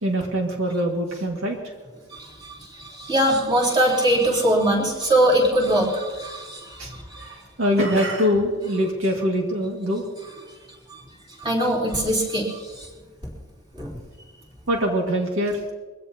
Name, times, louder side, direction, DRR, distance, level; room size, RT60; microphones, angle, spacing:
voice 1, 0.0-1.7 6.8-6.9 7.2-10.0 14.7-15.6, equal, 75° right, 0 dB, 2.1 m, -23 dB
voice 2, 2.1-7.3 10.9-11.0 11.4-12.9 13.7-13.9, right 1 dB, 25° right, -4 dB, 3.8 m, -22 dB
23.0 x 16.5 x 2.9 m, 1.3 s
head